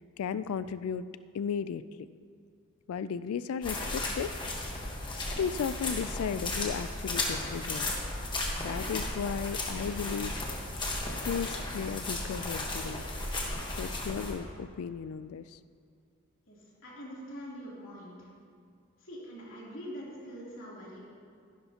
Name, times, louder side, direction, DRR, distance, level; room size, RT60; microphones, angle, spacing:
voice 1, 0.2-1.1 1.3-1.8 2.9-4.3 5.2-7.9 8.6-10.3 11.2-13.0 13.8-15.4, left 7 dB, 80° left, 14 dB, 0.3 m, -35 dB
sound 1, 3.6-14.3, left 2 dB, 20° left, 1.3 m, -35 dB
voice 2, 16.5-18.3 19.0-21.1, equal, 65° left, -6 dB, 3.1 m, -44 dB
14.5 x 11.0 x 2.9 m, 2.3 s
head